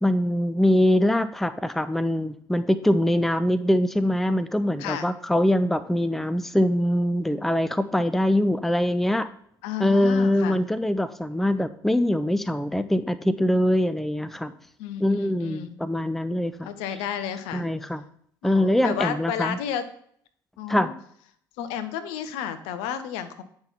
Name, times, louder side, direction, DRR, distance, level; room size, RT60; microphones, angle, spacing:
voice 1, 0.0-9.3 9.8-14.5 15.0-16.7 17.5-18.0 18.4-19.6 20.7-20.9, left 1 dB, ahead, 13 dB, 0.5 m, -23 dB
voice 2, 4.8-5.1 9.6-10.6 14.8-15.7 16.6-17.6 18.4-19.9 20.6-20.9 21.6-23.4, left 9 dB, 65° left, 10 dB, 0.8 m, -32 dB
8.7 x 5.7 x 4.5 m, 0.64 s
figure-of-eight pair, 55°, 11 cm